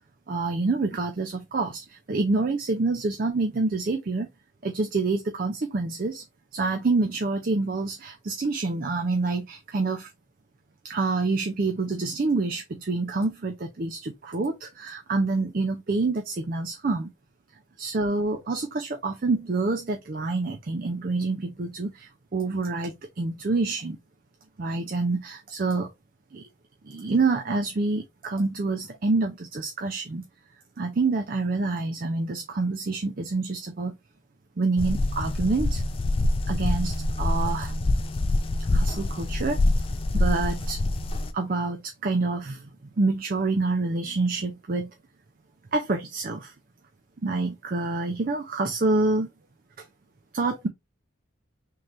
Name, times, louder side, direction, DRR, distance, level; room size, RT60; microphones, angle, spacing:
voice 1, 0.3-4.3 4.6-6.2 6.5-10.1 10.8-17.1 17.8-24.0 24.6-25.9 26.3-26.4 26.8-30.2 30.8-34.0 34.6-35.8 36.5-37.7 38.7-39.6 40.1-40.8 41.3-42.7 43.0-44.9 45.7-46.5 47.2-49.3 50.3-50.7, right 3 dB, 45° right, 0.5 m, -27 dB
sound 1, 34.8-41.3, left 2 dB, 25° left, 0.3 m, -25 dB
3.7 x 2.8 x 3.0 m
head